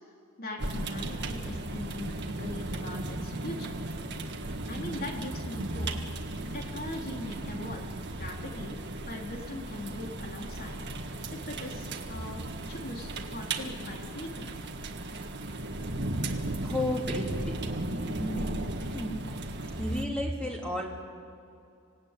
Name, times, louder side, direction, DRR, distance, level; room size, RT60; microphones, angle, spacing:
voice 1, 0.4-3.8 4.7-5.9 6.5-10.8 11.3-12.4 12.7-14.5, left 1 dB, 45° left, 0 dB, 3.6 m, -40 dB
sound 1, 0.6-20.1, right 2 dB, 55° right, 1.8 m, -36 dB
voice 2, 16.6-17.5 18.0-18.6 18.9-19.2 19.8-20.9, left 1 dB, 5° left, -2 dB, 3.5 m, -32 dB
26.0 x 18.0 x 9.1 m, 2.5 s
head